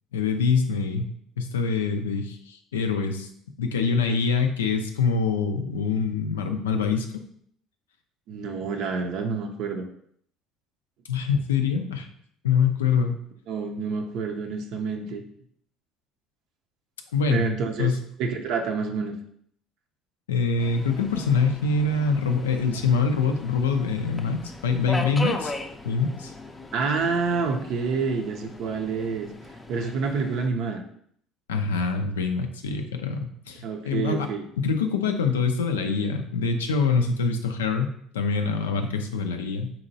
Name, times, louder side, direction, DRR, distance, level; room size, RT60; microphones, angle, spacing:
voice 1, 0.1-1.0 1.4-3.3 3.6-7.1 11.1-12.1 12.4-13.2 17.1-17.4 17.8-18.0 20.3-25.5 25.8-26.3 31.5-34.3 34.6-39.7, left 5 dB, 85° left, 6 dB, 0.4 m, -25 dB
voice 2, 8.3-9.8 13.5-15.2 17.3-17.9 18.2-19.2 26.7-29.3 29.7-30.8 33.6-34.4, right 4 dB, 65° right, 4 dB, 0.4 m, -28 dB
Subway metro underground, 20.6-30.5, left 2 dB, 20° left, 0.4 m, -38 dB
4.0 x 2.9 x 2.7 m, 0.66 s
hypercardioid pair, 65°, 0 cm